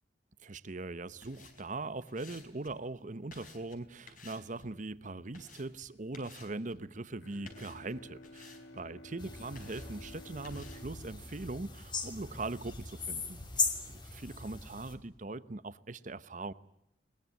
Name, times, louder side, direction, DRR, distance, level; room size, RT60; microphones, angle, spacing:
voice 1, 0.4-13.4 13.9-16.5, right 2 dB, 45° right, 15 dB, 0.9 m, -41 dB
sound 1, 1.1-13.7, left 3 dB, 50° left, 4.6 m, -57 dB
Bowed string instrument, 7.2-12.8, left 1 dB, 85° left, 2.5 m, -54 dB
sound 2, 9.2-14.9, left 4 dB, 25° left, 2.9 m, -39 dB
21.5 x 20.5 x 9.4 m, 0.76 s
head